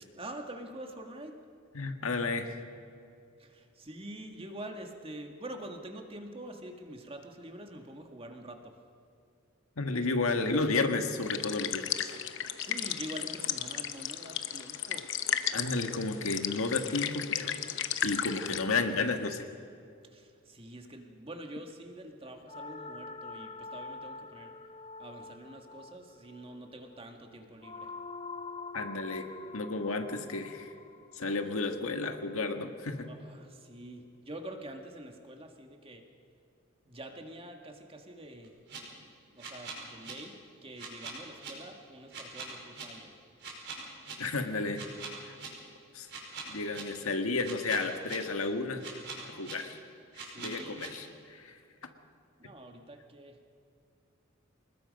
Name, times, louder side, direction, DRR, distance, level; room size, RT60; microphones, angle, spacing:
voice 1, 0.2-1.4 3.4-8.7 12.6-15.1 20.1-24.6 25.0-27.9 33.1-36.1 36.9-38.6 39.0-40.4 40.6-43.1 50.2-51.0 52.4-53.4, right 1 dB, 25° right, 4 dB, 1.8 m, -46 dB
voice 2, 1.7-2.6 9.8-12.1 15.5-17.6 18.0-19.4 28.7-30.7 31.1-33.1 44.2-44.8 45.2-45.3 45.9-46.1 46.5-48.9 49.2-49.8 50.4-51.6, left 3 dB, 85° left, 6 dB, 1.7 m, -32 dB
sound 1, 11.2-18.6, left 9 dB, 60° left, 0.9 m, -34 dB
sound 2, 22.5-32.7, left 3 dB, 30° left, 0.7 m, -46 dB
sound 3, 38.4-38.8 39.4-40.1 40.8-41.5 42.1-42.8 43.4-44.1 44.7-45.5 46.1-46.8 47.4-48.1 48.8-49.5 50.1-50.9, right 5 dB, 55° right, 5.0 m, -42 dB
25.5 x 20.5 x 5.3 m, 2.4 s
head